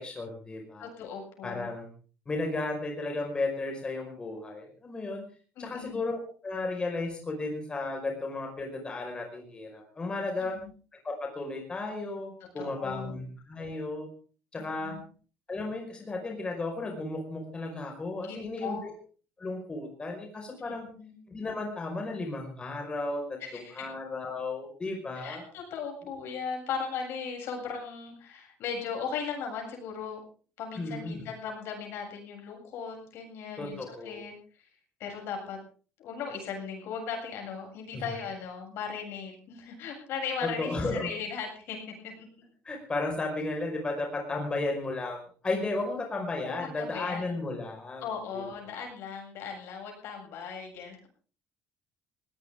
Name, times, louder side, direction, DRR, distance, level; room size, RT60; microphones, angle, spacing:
voice 1, 0.0-0.9 1.4-1.9 2.3-5.2 5.6-10.5 11.0-14.1 14.5-15.0 15.5-18.9 19.4-20.8 21.3-25.4 30.8-31.2 33.6-34.2 37.9-38.0 40.4-41.1 42.7-48.0 48.3-48.5, left 2 dB, 20° left, 2 dB, 5.2 m, -34 dB
voice 2, 0.8-1.7 5.6-6.0 10.5-10.7 12.6-13.2 14.6-15.1 18.2-18.9 20.6-21.1 23.4-23.9 25.1-30.2 30.6-34.7 35.0-35.6 36.0-42.3 46.5-47.3 48.0-51.1, left 6 dB, 70° left, 2 dB, 7.8 m, -38 dB
20.0 x 18.0 x 3.7 m, 0.40 s
cardioid pair, 125°, 4 cm